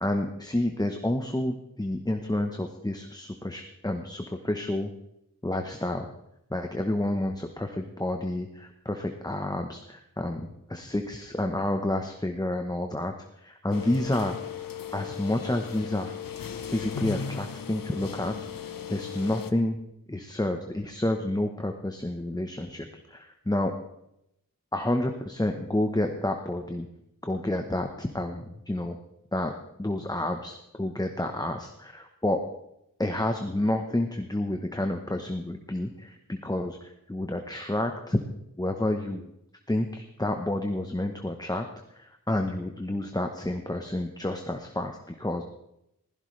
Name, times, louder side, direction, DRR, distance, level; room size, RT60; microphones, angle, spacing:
voice 1, 0.0-4.9 5.4-6.1 6.5-14.4 14.9-16.1 16.6-18.3 18.6-19.8 20.1-23.7 24.7-26.9 27.2-29.0 29.3-29.5 29.8-32.4 33.0-38.2 38.6-39.3 39.7-41.7 41.9-45.4, left 1 dB, 10° left, 4 dB, 1.0 m, -29 dB
the sound of plastic processing hall - rear, 13.7-19.5, left 7 dB, 80° left, 0.9 m, -37 dB
16.0 x 15.0 x 3.3 m, 0.81 s
wide cardioid pair, 65°, 33 cm